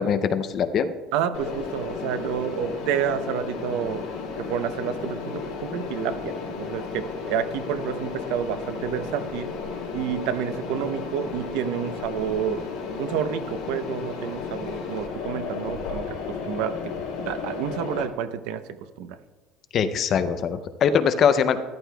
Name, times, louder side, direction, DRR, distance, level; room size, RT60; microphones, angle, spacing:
voice 1, 0.0-0.9 19.7-21.6, left 7 dB, 35° left, 10 dB, 0.5 m, -22 dB
voice 2, 1.1-4.0 4.4-9.6 9.9-12.6 13.0-16.8 17.2-19.2, right 8 dB, 75° right, 11 dB, 0.7 m, -29 dB
Mechanisms, 1.3-18.0, left 5 dB, 60° left, 3.2 m, -33 dB
13.5 x 11.5 x 2.3 m, 1.3 s
cardioid pair, 175°, 0 cm